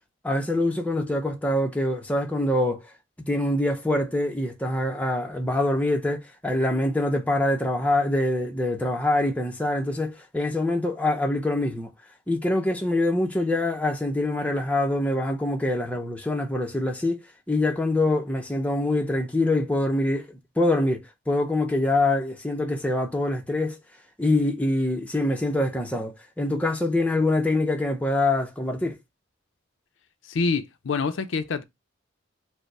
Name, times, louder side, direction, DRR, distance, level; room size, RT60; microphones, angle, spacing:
voice 1, 0.2-2.8 3.3-11.9 12.3-17.2 17.5-23.8 24.2-29.0, left 1 dB, 5° left, 0.5 m, -25 dB
voice 2, 30.2-31.6, left 4 dB, 70° left, 0.5 m, -26 dB
5.1 x 2.0 x 4.5 m
head